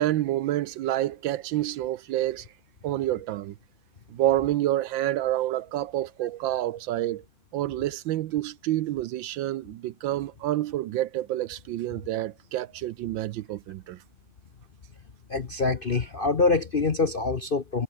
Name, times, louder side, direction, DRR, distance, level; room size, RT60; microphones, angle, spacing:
voice 1, 0.0-2.5 2.8-3.5 4.1-7.2 7.5-14.0, right 14 dB, 75° right, 1.3 m, -28 dB
voice 2, 15.3-17.8, left 3 dB, 40° left, 0.8 m, -25 dB
omnidirectional pair, 2.3 m